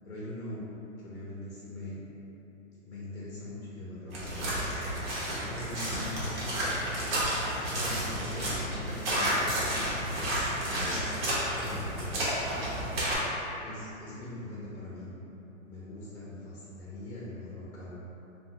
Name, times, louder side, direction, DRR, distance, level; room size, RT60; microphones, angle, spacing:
voice 1, 0.0-0.7 1.0-2.0 2.8-4.5 5.5-6.1 7.7-9.9 10.5-11.0 11.6-12.3 13.6-15.1 15.7-18.0, left 1 dB, 55° left, -8 dB, 0.8 m, -42 dB
sound 1, 4.1-13.2, right 1 dB, 45° right, 0.9 m, -31 dB
3.4 x 2.2 x 2.7 m, 2.9 s
hypercardioid pair, 155°, 41 cm